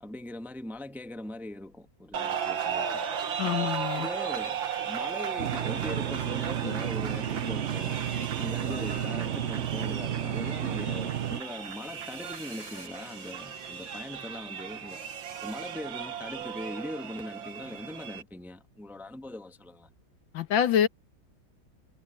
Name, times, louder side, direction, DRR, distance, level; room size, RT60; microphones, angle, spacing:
voice 1, 0.0-3.0 3.9-4.6 4.8-8.1 8.4-19.9, left 1 dB, ahead, 1.0 m, -41 dB
sound 1, 2.1-18.2, right 8 dB, 75° right, 2.2 m, -36 dB
voice 2, 3.4-4.1 20.3-20.9, left 9 dB, 75° left, 1.8 m, -25 dB
sound 2, 5.4-11.4, right 10 dB, 55° right, 0.8 m, -32 dB
sound 3, 10.9-15.4, left 2 dB, 40° left, 4.8 m, -55 dB
omnidirectional pair, 2.1 m